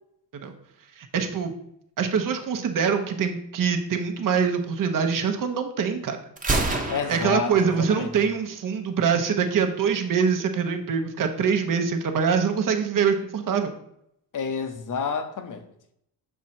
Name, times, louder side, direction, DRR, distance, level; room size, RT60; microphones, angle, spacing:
voice 1, 1.0-1.5 2.0-6.2 6.7-6.8 7.1-13.7, right 6 dB, 50° right, 1.0 m, -24 dB
Gunshot gunfire, 6.4-8.3, right 2 dB, 20° right, 1.1 m, -28 dB
voice 2, 6.9-8.3 14.3-15.7, left 6 dB, 45° left, 0.9 m, -30 dB
6.3 x 4.6 x 4.3 m
cardioid pair, 85°, 43 cm